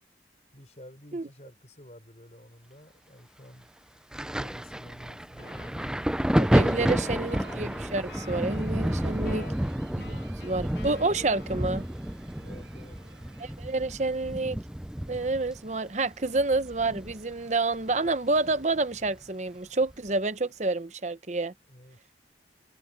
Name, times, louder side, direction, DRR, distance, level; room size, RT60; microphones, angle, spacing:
voice 1, 0.5-3.7 4.4-5.9 9.2-9.7 12.3-13.0 21.7-22.0, equal, 40° left, 5.5 m, -50 dB
Thunder, 4.1-17.5 17.7-19.1 19.9-20.1, equal, 5° right, 0.3 m, -30 dB
sound 1, 5.4-12.0, left 3 dB, 65° left, 2.4 m, -49 dB
voice 2, 6.3-9.5 10.0-11.8 13.4-14.6 15.1-21.5, right 3 dB, 40° right, 0.9 m, -29 dB
sound 2, 6.7-13.6, right 5 dB, 85° right, 6.8 m, -56 dB
head